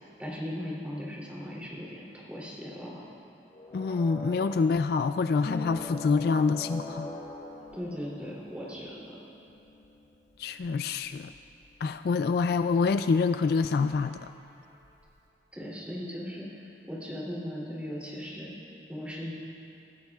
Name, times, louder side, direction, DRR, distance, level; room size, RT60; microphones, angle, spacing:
voice 1, 0.2-3.0 7.7-9.2 15.5-18.5 18.9-19.3, equal, 10° right, -6 dB, 3.0 m, -38 dB
sound 1, 3.5-8.8 13.1-14.8, equal, 30° left, 3.4 m, -46 dB
voice 2, 3.7-7.1 10.4-11.3 11.8-14.2, left 4 dB, 55° left, 10 dB, 0.3 m, -26 dB
Harp, 5.4-12.9 13.2-14.3 14.5-15.2, left 3 dB, 85° left, 1.9 m, -45 dB
24.5 x 13.5 x 2.4 m, 2.6 s
head